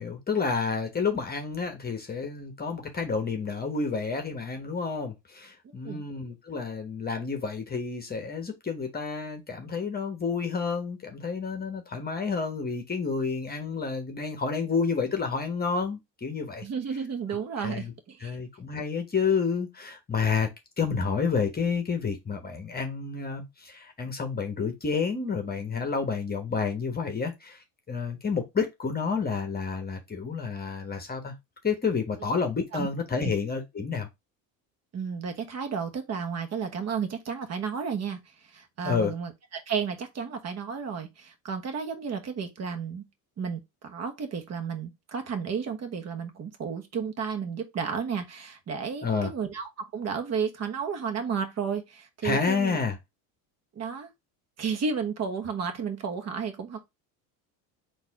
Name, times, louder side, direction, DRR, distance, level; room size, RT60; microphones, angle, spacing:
voice 1, 0.0-16.6 17.6-17.9 18.2-20.5 20.8-31.3 31.6-34.1 38.8-39.1 49.0-49.3 52.2-53.0, left 5 dB, 20° left, 1.1 m, -30 dB
voice 2, 16.6-18.3 32.7-32.9 33.2-33.3 34.9-38.2 38.5-43.0 43.4-52.8 53.7-54.1 54.6-56.9, right 6 dB, 40° right, 1.2 m, -32 dB
4.0 x 2.8 x 4.7 m
supercardioid pair, 100°, 42 cm